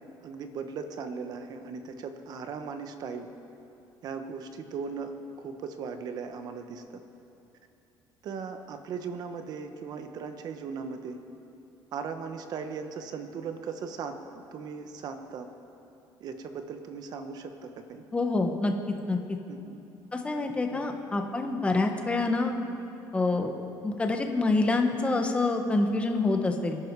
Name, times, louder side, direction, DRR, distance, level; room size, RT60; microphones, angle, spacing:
voice 1, 0.2-3.3 4.0-7.0 8.2-11.2 11.9-15.5 16.2-18.0 19.5-19.8 20.7-21.0, right 5 dB, 55° right, 7 dB, 1.2 m, -38 dB
voice 2, 18.1-18.7 19.1-19.2 20.1-22.5 23.1-23.5 23.8-26.8, left 3 dB, 15° left, 4 dB, 1.4 m, -26 dB
26.0 x 11.0 x 4.8 m, 2.8 s
cardioid pair, 130°, 8 cm